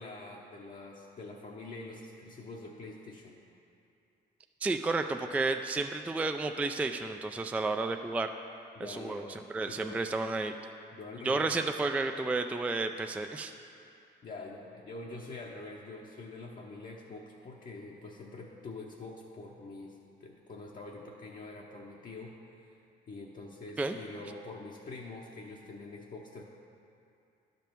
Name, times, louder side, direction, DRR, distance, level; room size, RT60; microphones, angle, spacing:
voice 1, 0.0-3.4 8.7-10.0 10.9-11.6 14.2-22.8 23.1-26.4, left 3 dB, 45° left, -3 dB, 0.8 m, -45 dB
voice 2, 4.6-8.3 8.9-9.3 9.5-10.5 11.2-13.5 23.8-24.0, right 3 dB, 5° right, 6 dB, 0.3 m, -31 dB
11.0 x 5.3 x 4.5 m, 2.6 s
cardioid pair, 90°, 20 cm